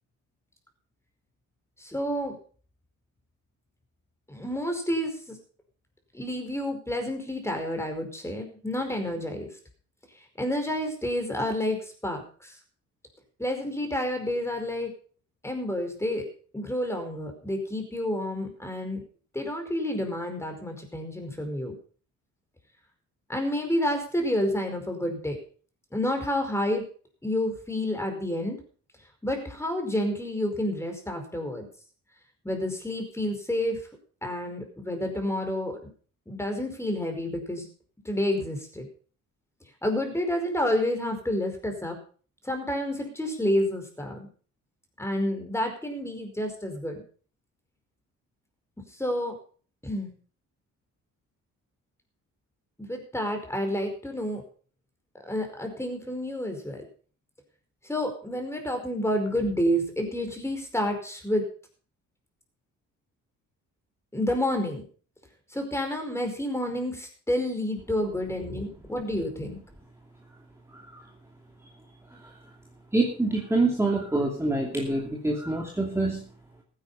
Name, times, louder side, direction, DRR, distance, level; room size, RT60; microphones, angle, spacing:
voice 1, 1.8-2.4 4.3-5.4 6.1-9.5 10.4-12.6 13.4-14.9 15.4-16.3 16.5-19.0 19.3-21.7 23.3-25.4 25.9-26.8 27.2-28.6 29.2-31.7 32.4-33.8 34.2-35.8 36.3-37.7 38.0-38.9 39.8-42.0 42.4-44.3 45.0-47.0 49.0-49.4 49.8-50.1 52.8-54.4 55.3-56.8 57.8-61.5 64.1-64.8 65.5-69.6, left 1 dB, 10° left, 4 dB, 4.9 m, -29 dB
voice 2, 70.7-71.1 72.1-72.4 72.9-76.2, right 2 dB, 10° right, 0 dB, 2.8 m, -26 dB
15.0 x 9.9 x 5.6 m, 0.42 s
cardioid pair, 90°, 30 cm